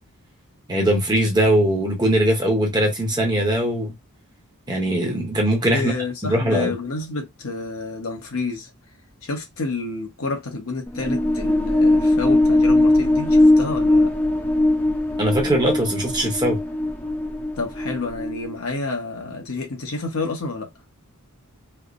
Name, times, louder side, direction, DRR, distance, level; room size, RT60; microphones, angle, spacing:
voice 1, 0.7-4.0 4.7-5.9 6.2-6.7 15.2-16.6, right 1 dB, 20° right, 0.8 m, -20 dB
voice 2, 5.7-8.7 9.2-14.1 17.6-20.7, left 3 dB, 70° left, 1.0 m, -29 dB
sound 1, 10.9-18.6, left 1 dB, 10° left, 0.4 m, -19 dB
3.1 x 2.0 x 2.5 m
head